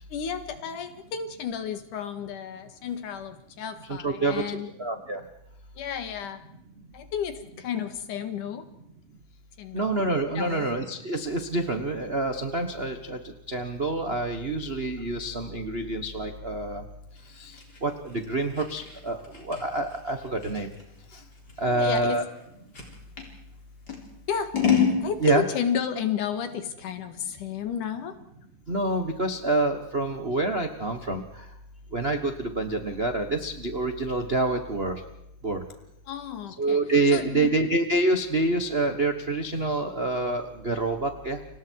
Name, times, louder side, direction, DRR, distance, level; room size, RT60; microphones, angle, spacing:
voice 1, 0.1-4.7 5.8-6.4 6.9-8.6 9.6-10.0 10.4-10.7 21.6-22.2 24.3-24.5 25.0-28.2 36.1-36.8 37.1-37.5, left 7 dB, 80° left, 9 dB, 3.3 m, -32 dB
voice 2, 3.9-4.4 4.8-5.2 9.7-13.2 13.5-16.8 17.4-17.5 17.8-20.7 21.6-22.2 25.2-25.4 28.7-31.2 31.9-35.0 35.4-35.6 36.6-41.4, right 2 dB, 60° right, 5 dB, 0.6 m, -27 dB
Scissors, 17.2-23.3 23.9-25.0, left 7 dB, 30° left, 4.3 m, -29 dB
30.0 x 25.5 x 4.7 m, 0.80 s
omnidirectional pair, 3.6 m